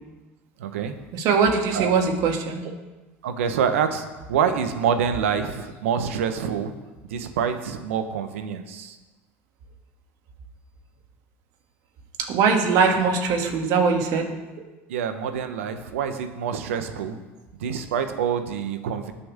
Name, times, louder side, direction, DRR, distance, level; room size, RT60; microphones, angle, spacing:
voice 1, 0.6-1.0 1.7-1.9 3.2-6.7 7.1-9.0 14.9-17.2 17.6-19.1, right 7 dB, 85° right, 8 dB, 1.2 m, -26 dB
voice 2, 1.1-2.8 12.3-14.3, right 5 dB, 60° right, 2 dB, 2.5 m, -21 dB
19.5 x 7.0 x 3.7 m, 1.2 s
hypercardioid pair, 90°, 7 cm